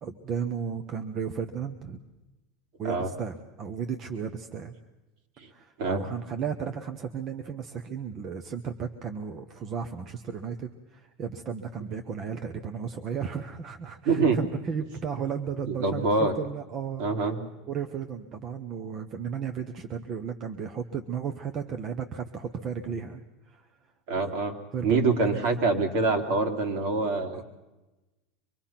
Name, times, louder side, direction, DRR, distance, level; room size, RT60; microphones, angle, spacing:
voice 1, 0.0-2.0 2.8-4.7 5.5-17.0 17.7-23.7 24.2-24.3 24.7-25.4 27.3-27.4, right 7 dB, 30° right, 6 dB, 1.1 m, -34 dB
voice 2, 14.0-14.4 15.7-16.3 17.0-17.4 24.1-24.5 24.8-27.4, right 3 dB, 65° right, 4 dB, 3.1 m, -25 dB
25.0 x 21.5 x 5.9 m, 1.1 s
supercardioid pair, 150°, 0 cm